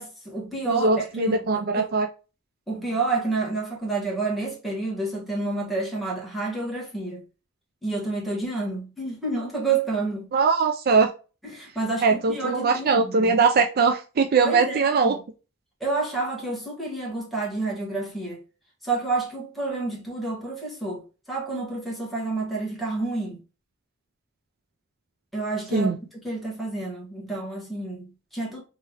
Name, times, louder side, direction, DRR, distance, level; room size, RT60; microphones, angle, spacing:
voice 1, 0.0-1.9 2.7-7.2 7.8-10.3 11.4-13.4 14.4-15.2 15.8-18.4 18.8-23.4 25.3-26.0 26.2-28.6, right 3 dB, ahead, 1.5 m, -29 dB
voice 2, 0.7-2.1 10.3-11.1 12.0-15.2 25.7-26.0, right 4 dB, 50° right, 0.4 m, -21 dB
3.3 x 3.2 x 3.3 m
head